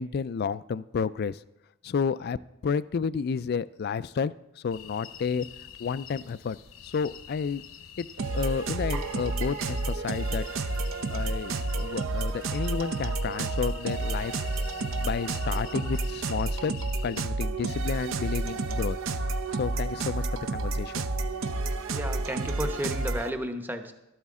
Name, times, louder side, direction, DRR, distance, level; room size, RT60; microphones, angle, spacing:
voice 1, 0.0-1.4 1.8-2.4 2.6-5.5 5.8-6.6 6.8-7.6 8.0-8.1 8.3-10.5 11.1-14.3 15.0-16.7 17.0-19.0 19.6-21.1, left 6 dB, 50° left, 17 dB, 0.3 m, -31 dB
sound 1, 4.7-17.3, left 9 dB, 70° left, 0.9 m, -46 dB
sound 2, 8.2-23.3, right 2 dB, 65° right, 0.7 m, -30 dB
sound 3, 8.9-11.9 12.2-12.4 12.9-13.0, right 5 dB, 85° right, 1.8 m, -46 dB
voice 2, 21.9-23.9, equal, 10° right, 7 dB, 0.9 m, -33 dB
12.5 x 12.5 x 3.6 m, 0.94 s
head